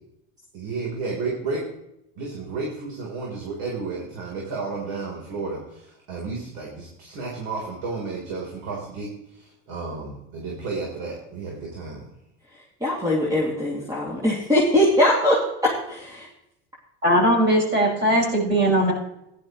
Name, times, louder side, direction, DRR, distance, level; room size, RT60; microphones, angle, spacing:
voice 1, 0.5-1.6 2.2-12.1, right 4 dB, 65° right, -2 dB, 3.8 m, -32 dB
voice 2, 12.8-16.3, left 1 dB, 10° right, -4 dB, 2.6 m, -21 dB
voice 3, 17.0-18.9, right 1 dB, 35° right, -2 dB, 5.7 m, -19 dB
15.0 x 11.0 x 3.1 m, 0.83 s
supercardioid pair, 110°, 30 cm